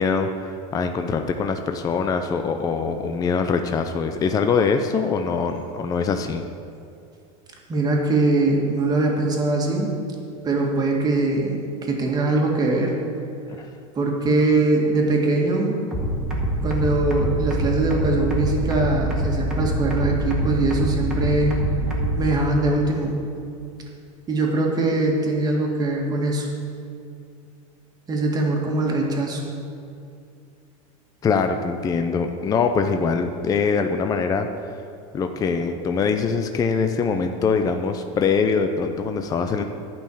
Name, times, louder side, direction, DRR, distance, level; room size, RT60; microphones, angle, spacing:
voice 1, 0.0-6.4 13.5-13.7 31.2-34.5 35.1-39.6, left 5 dB, 20° left, 6 dB, 0.5 m, -23 dB
voice 2, 7.7-9.9 10.4-13.0 13.9-15.8 16.6-21.5 21.9-23.2 24.3-26.5 28.1-29.4, right 2 dB, 20° right, 0 dB, 1.9 m, -22 dB
sound 1, 15.9-22.3, equal, 5° right, 1.8 m, -24 dB
10.5 x 5.6 x 8.4 m, 2.5 s
supercardioid pair, 135°, 17 cm